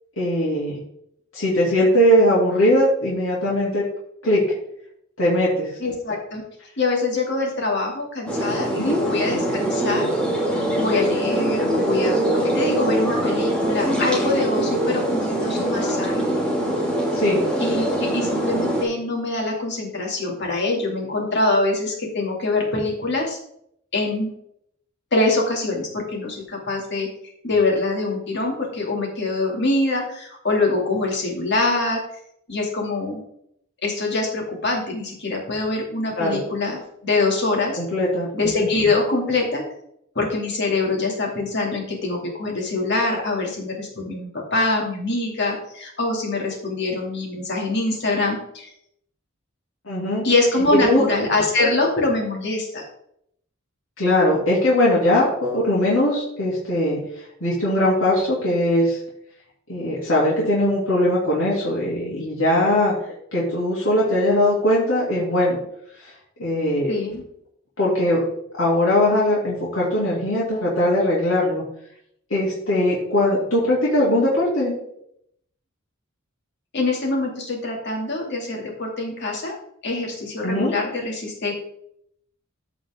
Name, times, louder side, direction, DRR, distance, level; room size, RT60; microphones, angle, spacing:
voice 1, 0.2-0.8 1.3-3.8 4.2-4.4 5.2-5.8 8.8-9.0 17.1-17.4 36.2-36.4 37.8-38.3 49.8-50.2 50.9-51.0 54.0-57.0 57.4-59.0 59.7-62.9 63.3-65.6 66.4-66.9 67.8-68.2 68.6-71.6 72.3-74.7 80.4-80.7, left 1 dB, 70° left, -6 dB, 3.1 m, -20 dB
voice 2, 5.8-6.4 6.8-10.1 10.8-16.3 17.6-23.4 23.9-24.3 25.1-27.1 27.4-32.0 32.5-33.2 33.8-37.8 38.3-39.6 40.1-48.7 50.2-52.8 66.9-67.2 76.7-79.6 79.8-81.5, left 2 dB, 55° left, 0 dB, 2.7 m, -24 dB
sound 1, 8.3-18.8, right 1 dB, 5° left, 2.4 m, -23 dB
14.5 x 5.0 x 3.8 m, 0.72 s
head